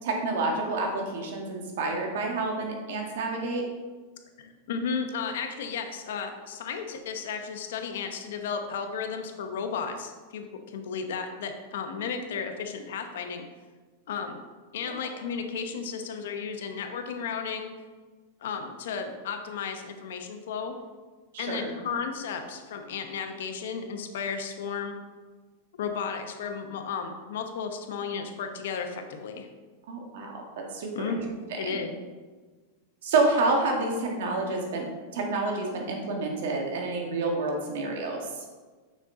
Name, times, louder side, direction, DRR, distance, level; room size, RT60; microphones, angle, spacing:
voice 1, 0.0-3.6 5.2-5.3 14.8-14.9 21.3-21.8 29.9-31.2 31.6-31.8 33.0-34.9 35.1-38.3, right 3 dB, 70° right, 1 dB, 1.7 m, -29 dB
voice 2, 4.4-13.4 14.1-14.4 14.7-17.7 18.4-20.7 21.4-25.0 25.8-29.5 30.9-31.2 31.5-31.9, left 6 dB, 75° left, 5 dB, 1.0 m, -34 dB
6.5 x 6.4 x 3.8 m, 1.3 s
supercardioid pair, 140°, 0 cm